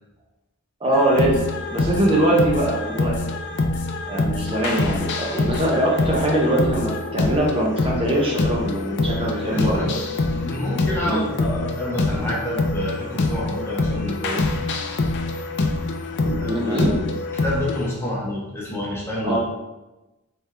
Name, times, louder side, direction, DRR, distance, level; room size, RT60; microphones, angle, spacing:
voice 1, 0.8-3.1 4.1-9.8 11.0-11.2 16.2-16.9 19.2-19.4, right 1 dB, 25° right, -4 dB, 0.7 m, -22 dB
sound 1, 0.9-17.9, left 2 dB, 55° left, 0.4 m, -25 dB
voice 2, 9.2-10.0 10.3-14.5 16.4-17.0 17.3-19.4, left 1 dB, 10° left, -5 dB, 0.8 m, -28 dB
3.4 x 3.4 x 3.3 m, 1.1 s
head